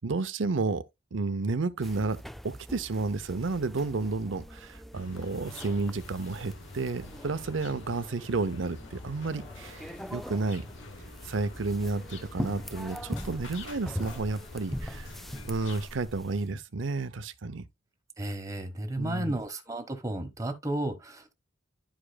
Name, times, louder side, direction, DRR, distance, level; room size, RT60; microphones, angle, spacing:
voice 1, 0.0-0.8 1.1-10.7 11.2-15.1 15.5-17.6 19.0-19.3, right 3 dB, 80° right, 0.7 m, -31 dB
sound 1, 1.8-16.5, equal, ahead, 0.3 m, -42 dB
sound 2, 4.9-15.9, left 3 dB, 75° left, 1.1 m, -47 dB
voice 2, 18.2-21.3, right 1 dB, 20° right, 1.2 m, -33 dB
11.5 x 4.9 x 2.3 m
head